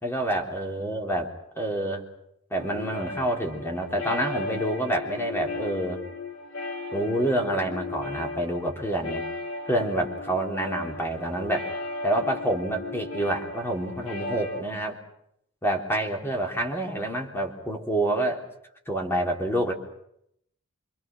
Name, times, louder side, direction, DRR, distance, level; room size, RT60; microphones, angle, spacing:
voice 1, 0.0-2.0 2.5-6.0 6.9-9.2 9.7-11.7 12.0-15.0 15.6-18.4 18.9-19.7, right 1 dB, 10° left, 2 dB, 3.5 m, -28 dB
sound 1, 2.5-14.6, left 3 dB, 85° left, 2.9 m, -36 dB
26.5 x 25.5 x 6.2 m, 0.74 s
head